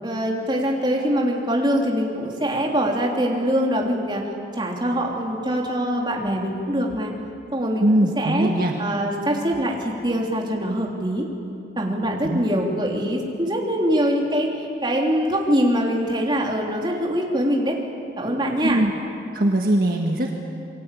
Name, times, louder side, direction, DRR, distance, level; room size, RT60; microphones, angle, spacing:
voice 1, 0.0-4.2 4.5-7.1 7.5-7.9 8.2-8.5 8.8-11.3 11.8-14.5 14.8-17.8 18.2-18.8, equal, 25° right, -1 dB, 3.5 m, -23 dB
voice 2, 7.8-8.7 12.2-12.4 18.6-18.9 19.3-20.3, right 1 dB, 55° right, 1 dB, 1.7 m, -21 dB
28.0 x 22.5 x 8.6 m, 2.6 s
head